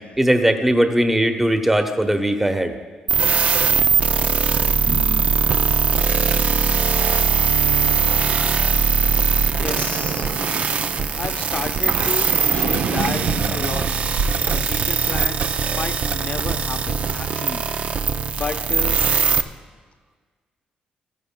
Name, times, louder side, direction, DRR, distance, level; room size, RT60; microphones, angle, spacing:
voice 1, 0.2-2.7 4.9-5.0, right 1 dB, 10° right, 6 dB, 0.9 m, -19 dB
sound 1, 3.1-19.4, right 6 dB, 50° right, 0.5 m, -20 dB
sound 2, 9.3-14.6, right 4 dB, 80° right, 0.8 m, -29 dB
voice 2, 9.6-10.3 11.1-13.2 13.5-13.9 14.2-15.4 15.7-17.6 18.3-19.0 19.3-19.5, left 5 dB, 50° left, 7 dB, 0.8 m, -31 dB
16.0 x 14.5 x 2.2 m, 1.5 s
cardioid pair, 95°, 3 cm